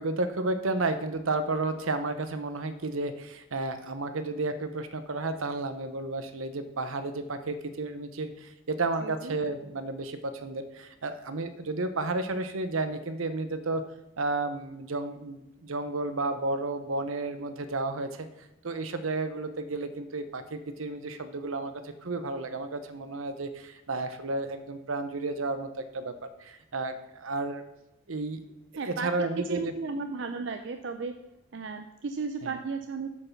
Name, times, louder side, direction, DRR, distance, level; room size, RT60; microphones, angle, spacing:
voice 1, 0.0-13.8 14.2-18.3 18.6-27.6 28.1-28.4 28.9-29.7 32.4-32.6, right 2 dB, 75° right, 10 dB, 0.9 m, -32 dB
voice 2, 9.0-9.4 28.8-31.1 31.5-33.1, right 4 dB, 55° right, 6 dB, 0.5 m, -34 dB
8.0 x 5.7 x 5.9 m, 0.92 s
head